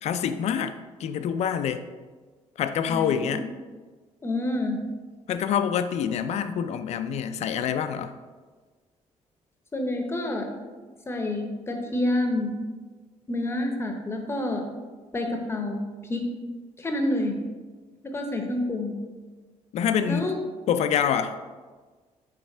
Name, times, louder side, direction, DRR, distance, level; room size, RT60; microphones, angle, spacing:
voice 1, 0.0-0.7 1.0-1.8 2.6-3.5 5.3-8.1 19.7-20.3 20.7-21.4, left 8 dB, 65° left, 10 dB, 0.4 m, -26 dB
voice 2, 2.9-3.5 4.2-4.8 9.7-10.6 11.1-12.5 13.3-14.6 15.1-16.2 16.8-17.3 18.0-18.9 20.1-20.4, left 1 dB, 20° left, 3 dB, 0.7 m, -28 dB
5.8 x 3.2 x 5.4 m, 1.4 s
cardioid pair, 155°, 12 cm